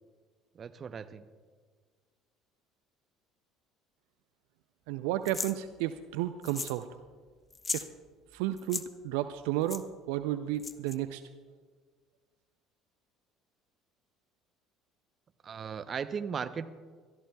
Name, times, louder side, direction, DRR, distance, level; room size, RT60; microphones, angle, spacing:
voice 1, 0.5-1.3 15.4-16.7, right 6 dB, 40° right, 12 dB, 0.7 m, -37 dB
voice 2, 4.9-6.9 7.7-7.9 8.3-11.2, right 13 dB, 70° right, 11 dB, 0.4 m, -32 dB
sound 1, 5.3-5.5 6.4-6.8 7.1-7.2 7.5-7.9 8.6-8.8 9.7-9.8 10.6-11.0, left 4 dB, 25° left, 0.7 m, -36 dB
25.0 x 13.5 x 2.3 m, 1.5 s
hypercardioid pair, 60°, 0 cm